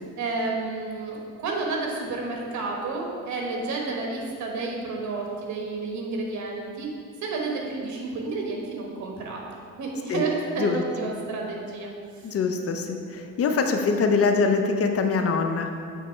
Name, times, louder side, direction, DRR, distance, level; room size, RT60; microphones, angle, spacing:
voice 1, 0.2-6.9 7.2-9.4 9.8-11.9, right 3 dB, 70° right, -1 dB, 1.2 m, -30 dB
voice 2, 12.2-15.7, left 4 dB, 50° left, 5 dB, 0.6 m, -23 dB
7.4 x 3.3 x 4.4 m, 2.3 s
cardioid pair, 90°, 30 cm